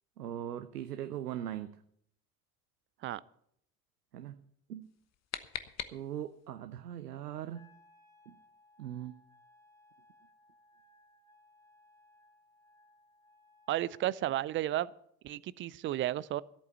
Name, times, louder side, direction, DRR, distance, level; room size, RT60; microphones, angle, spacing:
voice 1, 0.2-1.8 4.1-4.4 4.7-4.9 5.9-7.7 8.3-8.4 8.8-9.1, right 11 dB, 75° right, 11 dB, 0.7 m, -40 dB
sound 1, 4.8-6.5, left 10 dB, 35° left, 1.0 m, -43 dB
Wind instrument woodwind instrument, 7.5-14.1, left 2 dB, 5° left, 1.5 m, -64 dB
voice 2, 13.7-14.9 15.2-16.4, right 14 dB, 25° right, 21 dB, 0.4 m, -33 dB
14.0 x 8.4 x 6.7 m, 0.69 s
figure-of-eight pair, 60°, 47 cm